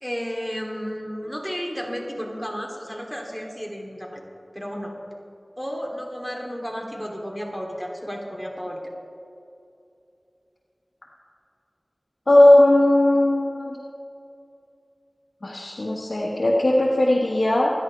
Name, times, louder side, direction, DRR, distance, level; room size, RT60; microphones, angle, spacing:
voice 1, 0.0-4.2 4.5-5.0 5.6-8.9, equal, ahead, -1 dB, 2.7 m, -32 dB
voice 2, 12.3-13.7 15.4-17.7, left 1 dB, 70° left, -3 dB, 1.4 m, -17 dB
26.5 x 9.9 x 3.3 m, 2.7 s
wide cardioid pair, 40°, 0 cm